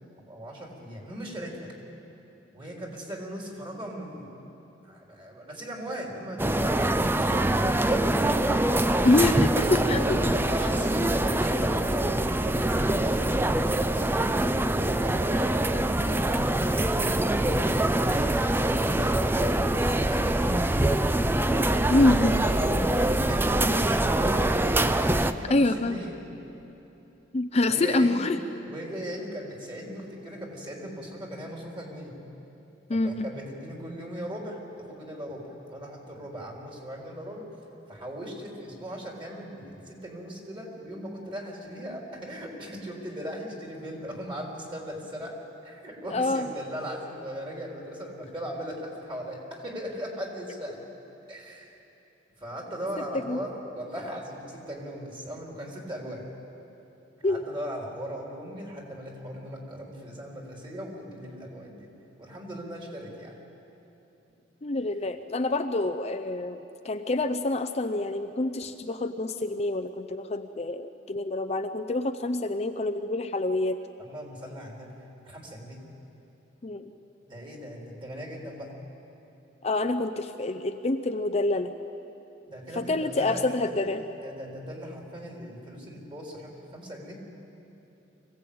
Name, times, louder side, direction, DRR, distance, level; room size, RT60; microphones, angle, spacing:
voice 1, 0.2-1.7 2.5-4.3 4.8-8.4 9.5-13.3 13.8-19.7 20.0-20.8 22.3-24.6 25.0-26.2 27.6-28.2 28.6-32.2 33.0-37.5 37.9-50.8 51.3-51.8 52.4-56.2 57.2-61.9 62.2-63.3 74.0-75.8 77.3-78.7 82.5-83.7 84.2-87.2, equal, 30° right, -1 dB, 4.0 m, -38 dB
sound 1, 6.4-25.3, right 1 dB, 10° right, 0.5 m, -24 dB
voice 2, 8.8-10.2 11.0-11.1 21.9-22.4 25.5-26.0 27.3-28.4 32.9-33.3 46.1-46.5 53.3-53.4 57.2-57.4 64.6-73.8 76.6-76.9 79.6-81.7 82.8-84.0, left 2 dB, 35° left, 7 dB, 0.6 m, -26 dB
24.5 x 16.5 x 8.7 m, 3.0 s
head